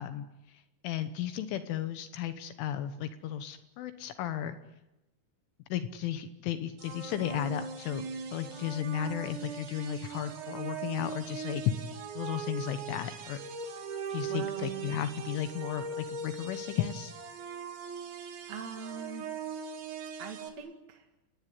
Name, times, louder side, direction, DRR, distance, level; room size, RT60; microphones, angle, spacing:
voice 1, 0.0-4.6 5.7-13.4 14.1-17.1, left 10 dB, 75° left, 10 dB, 3.5 m, -34 dB
sound 1, 6.8-20.5, right 5 dB, 65° right, 4.8 m, -40 dB
voice 2, 14.3-14.9 18.5-19.3 20.2-21.1, right 7 dB, 45° right, 3 dB, 2.7 m, -42 dB
28.5 x 19.5 x 9.9 m, 0.97 s
omnidirectional pair, 5.7 m